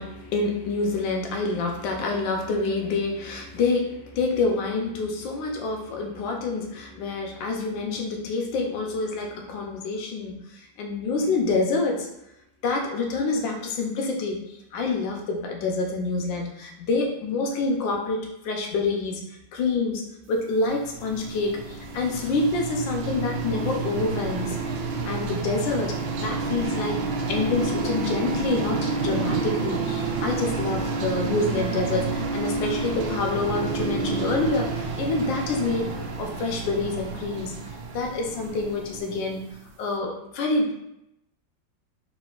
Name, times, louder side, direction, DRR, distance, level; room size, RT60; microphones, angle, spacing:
voice 1, 0.0-12.1 12.6-19.2 19.5-20.0 20.3-24.6 25.0-25.9 26.2-27.0 27.3-35.9 36.2-37.5 37.9-39.4 39.8-40.8, left 3 dB, 75° left, 1 dB, 1.4 m, -27 dB
sound 1, 20.6-39.6, right 4 dB, 85° right, 1.3 m, -29 dB
4.0 x 3.6 x 2.4 m, 0.83 s
omnidirectional pair, 2.1 m